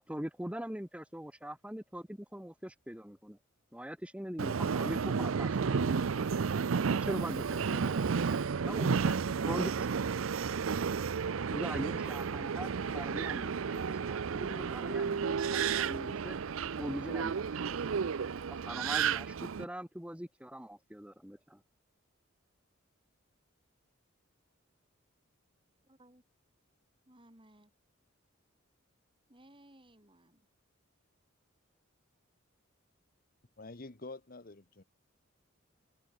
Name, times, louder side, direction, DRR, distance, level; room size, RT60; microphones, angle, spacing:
voice 1, 0.1-3.4 3.7-6.3 6.9-8.3 8.6-9.9 11.5-16.4 16.8-17.9 18.5-21.6, equal, 5° right, 2.2 m, -42 dB
Subway metro underground, 4.4-19.6, right 6 dB, 80° right, 0.5 m, -32 dB
voice 2, 25.8-26.2 27.1-27.7 29.3-30.5, right 1 dB, 25° right, 6.6 m, -60 dB
voice 3, 33.6-34.8, left 2 dB, 45° left, 1.3 m, -47 dB
head